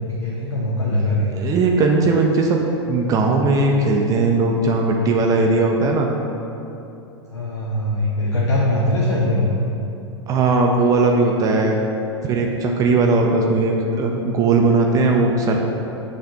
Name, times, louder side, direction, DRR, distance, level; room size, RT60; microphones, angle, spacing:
voice 1, 0.2-1.3 7.3-9.5, left 1 dB, 75° left, -5 dB, 0.8 m, -21 dB
voice 2, 1.3-2.6 2.9-6.1 10.3-11.8 12.3-15.7, right 3 dB, 25° right, 1 dB, 0.5 m, -18 dB
6.9 x 3.3 x 4.2 m, 2.8 s
figure-of-eight pair, 100°, 15 cm